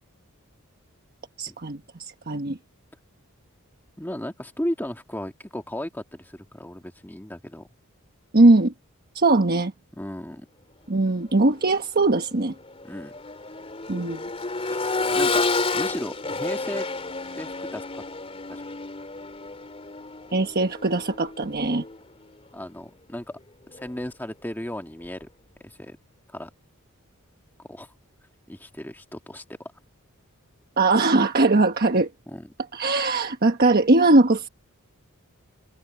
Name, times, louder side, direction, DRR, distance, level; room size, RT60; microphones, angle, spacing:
voice 1, 1.4-2.6 8.3-8.7 9.1-9.7 10.9-12.5 13.9-14.3 20.3-21.8 30.8-32.1 32.7-34.5, right 2 dB, 45° right, 1.3 m, -20 dB
voice 2, 4.0-7.7 10.0-10.4 12.8-13.1 15.1-15.4 15.7-16.9 17.3-18.0 18.5-18.6 22.5-23.4 23.7-25.3 25.6-26.0 26.3-26.5 27.7-27.9 28.5-29.4 32.3-32.5, left 1 dB, 10° left, 1.6 m, -35 dB
Accelerating revving vroom, 11.5-11.7 12.1-22.0 23.7-23.8, left 3 dB, 25° left, 3.4 m, -30 dB
head